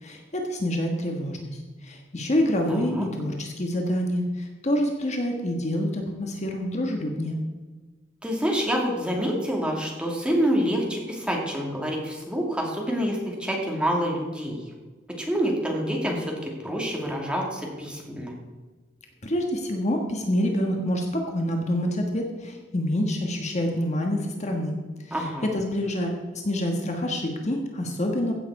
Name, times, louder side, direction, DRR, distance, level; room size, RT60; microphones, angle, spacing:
voice 1, 0.0-7.4 19.2-24.8 25.1-28.3, left 1 dB, 40° left, 2 dB, 1.4 m, -27 dB
voice 2, 2.7-3.1 8.2-14.6 15.2-18.3 25.1-25.5, equal, 5° right, -1 dB, 2.3 m, -27 dB
15.5 x 7.7 x 4.7 m, 1.3 s
head